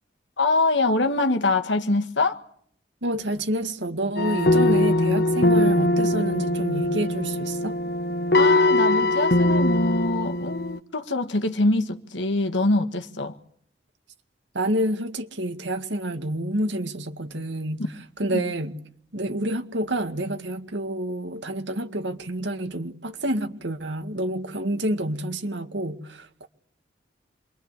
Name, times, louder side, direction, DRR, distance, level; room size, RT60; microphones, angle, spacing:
voice 1, 0.4-2.4 8.3-13.3 18.3-18.4, left 2 dB, 85° left, 1.7 m, -24 dB
voice 2, 3.0-7.8 14.5-17.8 18.2-18.8 19.1-26.5, right 1 dB, 80° right, 2.0 m, -28 dB
sound 1, 4.2-10.8, left 1 dB, 60° left, 1.3 m, -21 dB
27.5 x 22.5 x 8.2 m
head